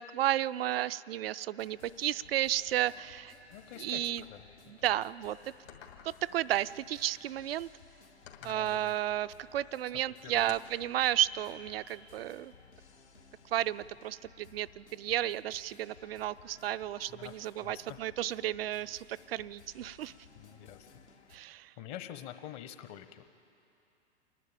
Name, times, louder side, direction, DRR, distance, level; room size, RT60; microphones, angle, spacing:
voice 1, 0.0-3.3 3.8-4.2 4.7-5.4 6.0-7.7 8.4-12.5 13.5-20.1 21.3-21.7, right 12 dB, 60° right, 17 dB, 0.5 m, -33 dB
sound 1, 1.6-21.4, left 5 dB, 80° left, 1.8 m, -58 dB
voice 2, 3.5-4.4 4.8-4.9 8.4-8.9 10.2-10.4 17.1-17.3 17.6-18.0 20.3-20.9 21.8-23.3, left 11 dB, 40° left, 10 dB, 1.1 m, -46 dB
sound 2, 5.7-6.4 8.3-8.7 10.5-10.9, left 8 dB, 65° left, 2.5 m, -51 dB
27.5 x 11.0 x 8.7 m, 2.8 s
figure-of-eight pair, 100°, 34 cm